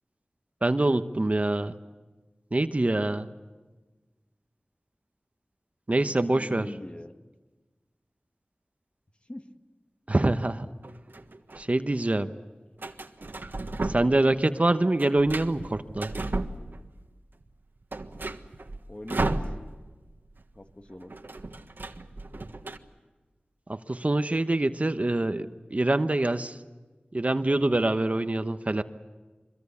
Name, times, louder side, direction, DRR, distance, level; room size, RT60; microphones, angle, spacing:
voice 1, 0.6-1.7 2.5-3.3 5.9-6.7 10.1-10.7 11.6-12.3 13.8-16.1 23.7-26.6 27.1-28.8, right 2 dB, 40° right, 10 dB, 1.0 m, -25 dB
voice 2, 6.0-7.1 9.3-9.4 18.9-19.5 20.6-21.1, left 1 dB, 35° left, 6 dB, 1.7 m, -41 dB
sound 1, 10.8-11.6 12.8-14.3 14.6-17.1 17.4-17.5 17.8-20.0 20.2-20.4 20.7-22.8, right 2 dB, 75° right, 1.4 m, -34 dB
24.5 x 22.5 x 8.5 m, 1.3 s
wide cardioid pair, 50°, 4 cm